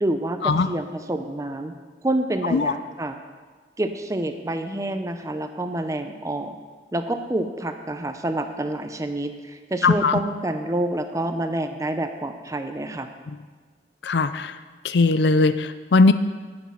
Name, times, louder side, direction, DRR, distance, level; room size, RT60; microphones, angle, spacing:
voice 1, 0.0-1.7 2.0-3.1 3.8-6.6 6.9-13.1, right 1 dB, 20° right, 7 dB, 0.6 m, -28 dB
voice 2, 9.8-10.2 13.3-13.4 14.0-14.6 14.8-16.1, left 3 dB, 70° left, 12 dB, 0.5 m, -19 dB
9.9 x 7.1 x 5.8 m, 1.4 s
head